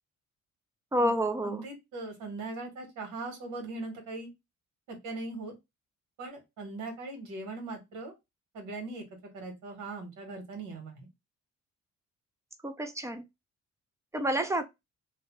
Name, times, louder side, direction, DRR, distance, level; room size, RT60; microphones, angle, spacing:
voice 1, 0.9-1.6 12.6-13.2 14.1-14.6, equal, 10° right, 0.6 m, -29 dB
voice 2, 1.4-4.3 4.9-5.5 6.2-8.1 8.5-9.0 9.3-11.1, right 3 dB, 85° right, 1.4 m, -40 dB
2.7 x 2.1 x 3.0 m
cardioid pair, 90°, 30 cm